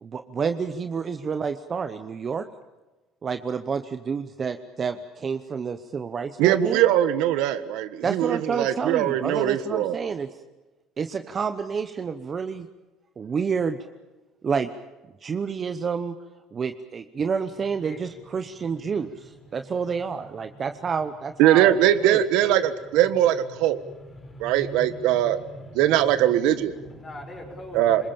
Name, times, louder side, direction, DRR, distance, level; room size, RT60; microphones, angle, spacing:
voice 1, 0.0-2.5 3.2-6.8 8.0-10.3 11.0-12.7 13.2-13.9 14.4-14.7 15.2-16.2 16.5-21.7 22.0-22.2, right 6 dB, 25° right, 9 dB, 0.9 m, -29 dB
voice 2, 6.4-10.0 21.4-23.8 24.4-25.4 25.7-26.7 27.7-28.1, right 12 dB, 75° right, 12 dB, 1.4 m, -21 dB
voice 3, 24.2-24.9 25.2-25.8 26.8-28.1, equal, 20° left, 3 dB, 5.5 m, -40 dB
26.0 x 22.0 x 7.2 m, 1.1 s
cardioid pair, 155°, 0 cm